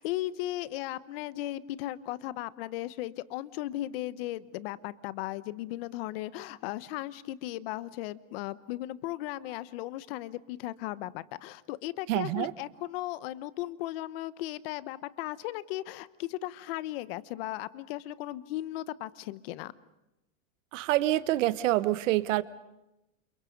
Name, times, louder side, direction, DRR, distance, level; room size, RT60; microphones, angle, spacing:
voice 1, 0.0-19.7, left 15 dB, 45° left, 16 dB, 1.0 m, -36 dB
voice 2, 12.1-12.5 20.7-22.4, right 15 dB, 65° right, 15 dB, 1.3 m, -26 dB
29.0 x 28.0 x 5.3 m, 0.92 s
supercardioid pair, 180°, 40 cm